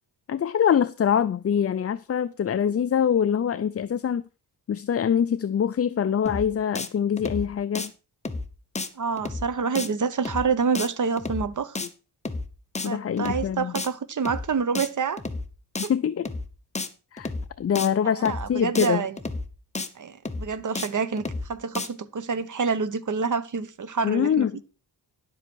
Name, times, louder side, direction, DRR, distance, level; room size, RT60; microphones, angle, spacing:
voice 1, 0.3-4.2 4.7-7.9 11.8-11.9 12.8-13.7 15.9-16.3 17.1-17.3 17.6-19.1 24.0-24.5, left 8 dB, 35° left, 0.4 m, -24 dB
sound 1, 6.3-6.5 6.8-6.9 7.2-7.5 7.7-7.9 8.3-8.5 8.8-8.9 9.2-9.5 9.8-9.9 10.3-10.5 10.7-10.9 11.2-11.5 11.8-11.9 12.3-12.5 12.8-12.9 13.2-13.5 13.8-13.9 14.3-14.5 14.7-14.9 15.2-15.5 15.8-15.9 16.3-16.5 16.7-16.9 17.2-17.5 17.8-17.9 18.3-18.5 18.8-18.9 19.2-19.5 19.7-19.9 20.3-20.5 20.8-20.9 21.2-21.5 21.7-21.9, left 3 dB, 15° left, 1.0 m, -31 dB
voice 2, 9.0-11.7 12.8-15.2 15.8-15.9 18.2-19.2 20.0-21.2 21.5-24.5, right 5 dB, 45° right, 1.0 m, -27 dB
11.0 x 7.8 x 4.6 m
wide cardioid pair, 110°, 41 cm